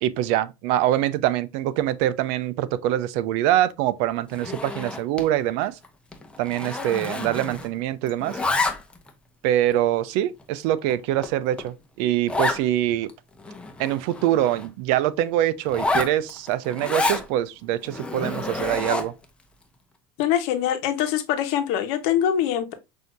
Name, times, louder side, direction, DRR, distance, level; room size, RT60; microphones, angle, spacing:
voice 1, 0.0-5.8 6.4-8.4 9.4-13.1 13.8-19.1, right 13 dB, 65° right, 0.5 m, -24 dB
Zipper (clothing), 4.3-5.3 5.6-5.9 6.1-7.8 8.1-9.1 9.7-9.8 10.4-10.5 10.9-11.0 11.2-11.3 11.6-11.7 12.3-12.6 13.1-13.2 13.4-14.7 15.6-17.3 17.8-19.2, left 3 dB, 10° left, 0.8 m, -28 dB
voice 2, 20.2-22.7, left 10 dB, 65° left, 1.1 m, -23 dB
6.2 x 2.7 x 2.5 m
supercardioid pair, 115°, 12 cm